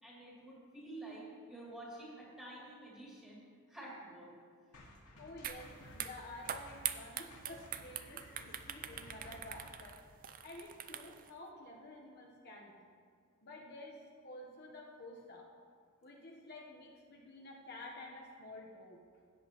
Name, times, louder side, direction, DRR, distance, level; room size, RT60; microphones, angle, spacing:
voice 1, 0.0-3.4 3.7-4.3, right 1 dB, 5° right, -7 dB, 2.7 m, -49 dB
sound 1, 4.7-9.9, left 1 dB, 90° left, 1.9 m, -56 dB
voice 2, 5.2-10.0 10.4-12.9 13.4-15.5 16.0-19.0, left 1 dB, 50° left, -2 dB, 1.0 m, -51 dB
sound 2, 5.4-5.6 5.9-11.3, right 10 dB, 40° right, 0.4 m, -43 dB
16.5 x 8.4 x 3.0 m, 2.1 s
head